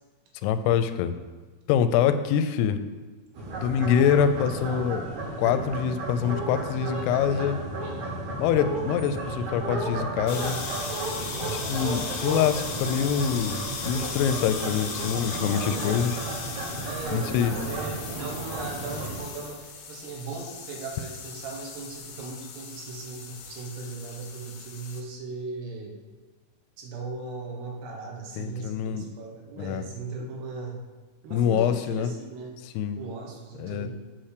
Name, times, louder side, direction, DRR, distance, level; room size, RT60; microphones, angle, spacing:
voice 1, 0.4-1.2 1.7-2.8 3.6-5.0 5.4-7.6 8.4-10.6 11.5-16.2 17.1-17.6 28.4-29.1 29.6-29.9 31.3-32.1 32.8-33.0 33.6-33.9, left 8 dB, 85° left, 10 dB, 2.6 m, -25 dB
sound 1, 3.3-19.2, right 2 dB, 65° right, 2.7 m, -33 dB
sound 2, 10.3-25.0, left 5 dB, 70° left, 2.1 m, -37 dB
voice 2, 15.7-16.1 16.9-26.0 26.8-30.8 31.2-32.6 33.0-33.9, right 3 dB, 85° right, 0 dB, 3.3 m, -38 dB
7.7 x 4.4 x 6.6 m, 1.3 s
omnidirectional pair, 4.6 m